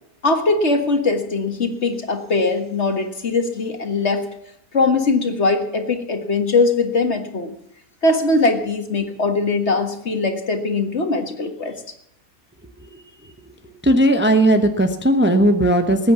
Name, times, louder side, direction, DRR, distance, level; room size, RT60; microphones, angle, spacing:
voice 1, 0.2-4.3 4.7-7.5 8.0-11.8, left 3 dB, 50° left, 7 dB, 1.9 m, -20 dB
voice 2, 13.8-16.1, right 1 dB, 10° right, 6 dB, 1.0 m, -16 dB
19.0 x 9.4 x 7.0 m, 0.76 s
omnidirectional pair, 1.5 m